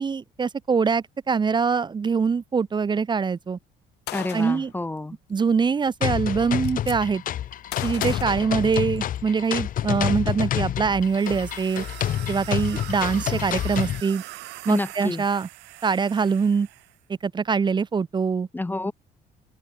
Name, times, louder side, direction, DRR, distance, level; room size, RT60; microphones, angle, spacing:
voice 1, 0.0-3.6 4.3-4.7 5.3-7.2 7.8-11.8 12.3-14.2 14.6-15.5 15.8-16.7 17.2-18.5, right 5 dB, 25° right, 0.8 m, -23 dB
Gunshot gunfire, 4.1-4.7 5.9-6.0 6.2-7.0 7.7-9.2, left 18 dB, 80° left, 1.6 m, -36 dB
voice 2, 4.1-5.2 14.7-15.2 18.5-18.9, left 2 dB, 10° left, 0.8 m, -29 dB
sound 1, 6.0-14.0, left 11 dB, 55° left, 1.1 m, -28 dB
sound 2, 11.0-17.0, right 20 dB, 90° right, 3.3 m, -42 dB
open air
cardioid pair, 110°, 17 cm